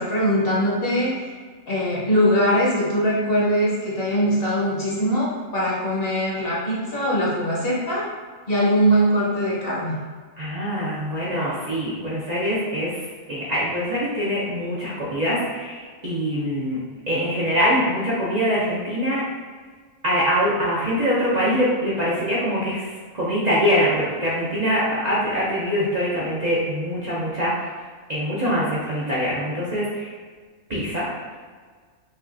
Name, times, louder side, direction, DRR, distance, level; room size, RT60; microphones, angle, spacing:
voice 1, 0.0-1.3 1.7-8.1 8.5-9.9, equal, 50° left, -6 dB, 1.1 m, -21 dB
voice 2, 10.4-19.2 20.0-22.9 23.1-27.5 28.1-30.1 30.7-31.0, equal, 40° right, -8 dB, 0.7 m, -23 dB
5.4 x 2.4 x 2.6 m, 1.5 s
omnidirectional pair, 1.4 m